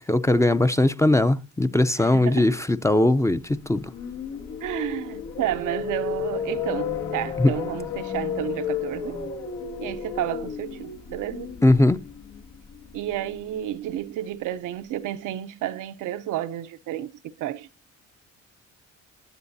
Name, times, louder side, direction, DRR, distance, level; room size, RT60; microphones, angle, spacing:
voice 1, 0.1-3.4 3.7-3.9 7.4-7.5 11.6-12.0, left 1 dB, 10° left, 0.6 m, -19 dB
voice 2, 1.9-2.6 4.6-9.3 9.8-11.6 12.9-17.7, right 12 dB, 85° right, 0.8 m, -31 dB
sound 1, 3.6-13.7, left 7 dB, 85° left, 2.6 m, -33 dB
21.0 x 7.9 x 2.7 m
cardioid pair, 90°, 30 cm